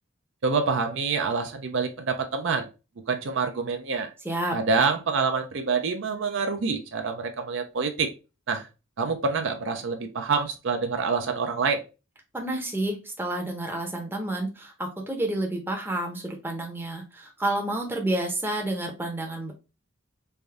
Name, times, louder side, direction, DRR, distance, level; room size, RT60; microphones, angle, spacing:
voice 1, 0.4-2.7 3.1-4.1 4.5-8.1 8.5-8.6 9.0-11.8, right 4 dB, 60° right, 6 dB, 0.5 m, -26 dB
voice 2, 4.2-4.6 12.3-19.5, right 1 dB, 10° right, 1 dB, 0.7 m, -30 dB
3.4 x 2.6 x 3.4 m, 0.30 s
head